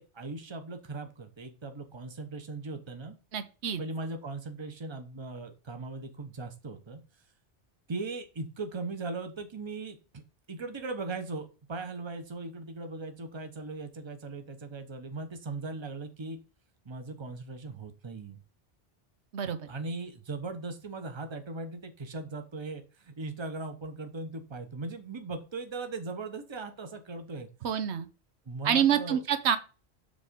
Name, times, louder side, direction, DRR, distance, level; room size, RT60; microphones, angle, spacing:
voice 1, 0.0-3.1 3.8-7.0 7.9-10.2 10.5-16.4 16.8-18.4 19.7-27.5 28.5-29.2, right 3 dB, 25° right, 6 dB, 0.9 m, -39 dB
voice 2, 3.3-3.8 19.3-19.7 27.6-28.1 28.6-29.6, right 8 dB, 80° right, 9 dB, 1.0 m, -27 dB
7.4 x 3.6 x 5.1 m, 0.34 s
omnidirectional pair, 1.1 m